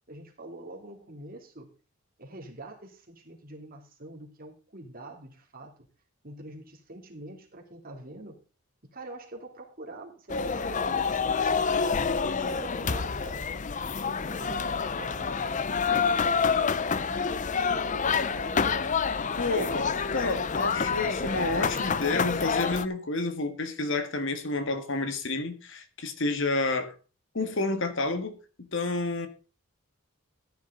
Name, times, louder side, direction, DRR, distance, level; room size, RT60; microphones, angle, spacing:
voice 1, 0.1-1.7 2.2-5.8 6.2-8.4 8.8-13.4 13.9-18.9 19.3-20.0, right 2 dB, 40° right, 3.0 m, -45 dB
sound 1, 10.3-22.9, left 5 dB, 35° left, 0.6 m, -28 dB
voice 2, 19.4-19.9 20.1-26.9 27.3-29.3, left 2 dB, 60° left, 1.7 m, -29 dB
14.0 x 10.0 x 3.9 m
head